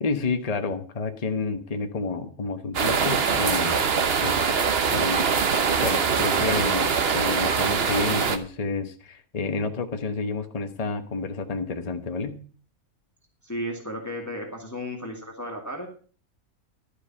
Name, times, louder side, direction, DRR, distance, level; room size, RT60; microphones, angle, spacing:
voice 1, 0.0-3.8 4.2-4.5 4.9-12.4, left 4 dB, 30° left, 7 dB, 1.0 m, -30 dB
sound 1, 2.7-8.4, right 6 dB, 50° right, 1.1 m, -23 dB
voice 2, 13.4-15.9, equal, 10° left, 2 dB, 2.0 m, -34 dB
12.0 x 8.2 x 5.7 m, 0.41 s
omnidirectional pair, 1.5 m